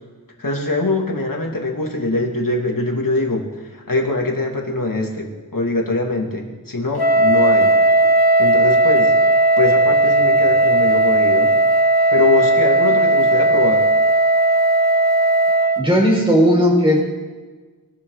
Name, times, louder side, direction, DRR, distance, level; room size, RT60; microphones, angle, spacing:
voice 1, 0.4-7.7 8.4-9.1 9.6-11.5 12.1-13.9, left 2 dB, 60° left, 0 dB, 3.0 m, -22 dB
Wind instrument woodwind instrument, 7.0-15.9, right 2 dB, 80° left, 1.3 m, -15 dB
voice 2, 15.8-17.0, equal, 15° right, -3 dB, 6.5 m, -15 dB
23.5 x 13.5 x 4.2 m, 1.3 s
wide cardioid pair, 60°, 38 cm